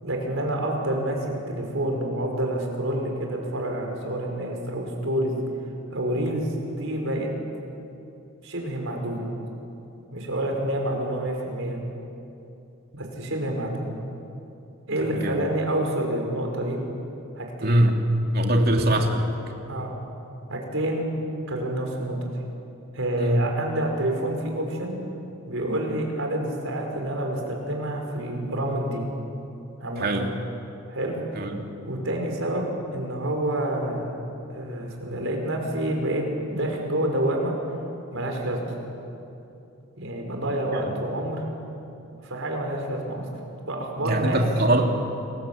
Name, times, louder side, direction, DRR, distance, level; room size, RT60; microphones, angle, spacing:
voice 1, 0.0-5.4 5.9-7.3 8.4-9.3 10.1-11.8 12.9-13.9 14.9-16.8 17.4-17.8 19.7-19.9 20.5-21.1 21.5-22.3 22.9-25.0 25.5-29.0 29.8-30.1 30.9-31.2 31.8-34.2 34.5-37.5 38.1-38.7 40.0-41.4 42.2-43.2 43.7-44.4 44.7-44.9, right 1 dB, 65° right, 1 dB, 5.7 m, -28 dB
voice 2, 17.6-18.0 18.3-19.3 23.2-23.4 30.0-30.3 31.3-31.6 44.0-44.9, right 1 dB, 45° right, 2 dB, 2.9 m, -22 dB
29.5 x 21.5 x 8.7 m, 2.8 s
head